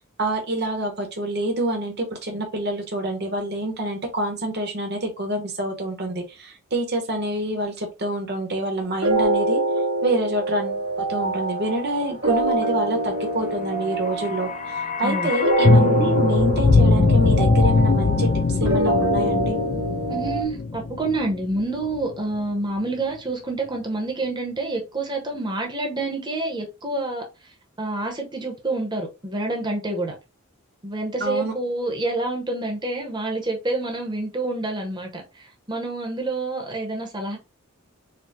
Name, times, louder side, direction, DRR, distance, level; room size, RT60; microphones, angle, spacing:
voice 1, 0.2-9.6 10.0-19.6 31.2-31.5, right 1 dB, 50° right, 1.1 m, -27 dB
sound 1, 9.0-20.4, right 2 dB, 85° right, 1.5 m, -25 dB
sound 2, 14.0-22.1 22.3-22.4, left 3 dB, 35° left, 0.4 m, -21 dB
voice 2, 20.1-27.2 27.8-30.1 30.8-35.2 35.7-37.4, right 2 dB, 20° right, 0.9 m, -27 dB
4.5 x 2.3 x 3.6 m
head